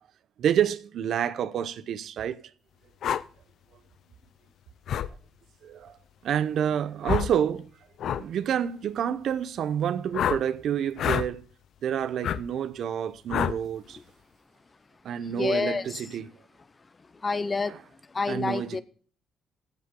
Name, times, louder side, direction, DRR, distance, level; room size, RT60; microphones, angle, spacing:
voice 1, 0.4-2.4 5.6-6.0 6.2-7.7 8.1-11.5 11.8-14.0 15.0-16.3 18.3-18.8, right 9 dB, 70° right, 0.7 m, -28 dB
sound 1, 3.0-3.2 4.9-5.1 7.0-7.3 8.0-8.2 10.1-10.4 11.0-11.3 12.2-12.4 13.3-13.6, left 9 dB, 70° left, 0.5 m, -27 dB
voice 2, 15.2-16.0 17.1-17.8 18.1-18.8, left 4 dB, 30° left, 0.7 m, -29 dB
16.0 x 6.6 x 3.7 m
cardioid pair, 90°, 0 cm